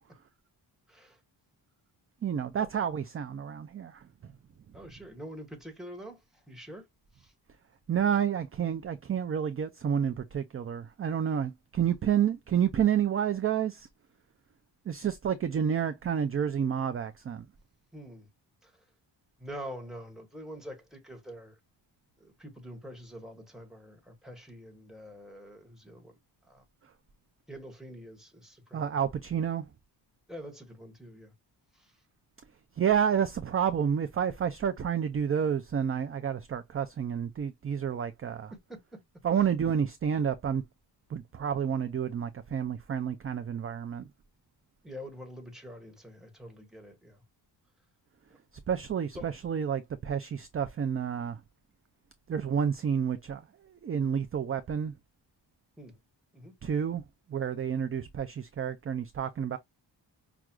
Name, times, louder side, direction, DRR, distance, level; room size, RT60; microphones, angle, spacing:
voice 1, 0.9-1.2 2.6-2.7 4.7-6.2 6.5-6.9 7.1-7.3 17.9-18.3 18.6-18.7 19.4-21.6 22.2-26.1 26.5-26.6 27.5-28.9 30.3-31.3 31.7-31.9 38.7-39.0 44.8-47.2 49.1-49.3 55.8-56.0 56.3-56.5, equal, ahead, 1.3 m, -45 dB
voice 2, 2.2-4.0 7.9-13.9 14.9-17.5 28.7-29.6 32.8-38.5 39.2-40.6 41.1-44.1 48.7-51.4 52.3-53.4 53.8-54.9 56.6-57.0 57.3-59.6, right 8 dB, 35° right, 0.4 m, -29 dB
5.9 x 2.3 x 2.3 m
wide cardioid pair, 130°, 44 cm